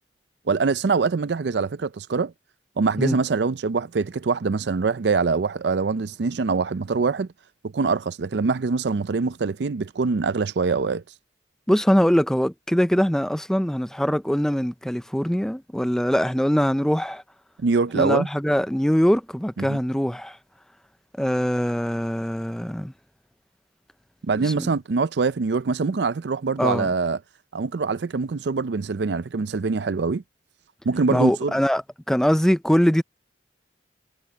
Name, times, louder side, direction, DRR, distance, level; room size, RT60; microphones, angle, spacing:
voice 1, 0.5-2.3 2.8-7.3 7.6-11.0 17.6-18.3 19.6-19.8 24.2-27.2 27.5-30.2 30.9-31.5, right 4 dB, 65° right, 0.5 m, -24 dB
voice 2, 11.7-17.2 17.9-20.4 21.2-22.9 24.4-24.7 26.6-26.9 31.1-33.0, equal, 5° left, 0.5 m, -22 dB
head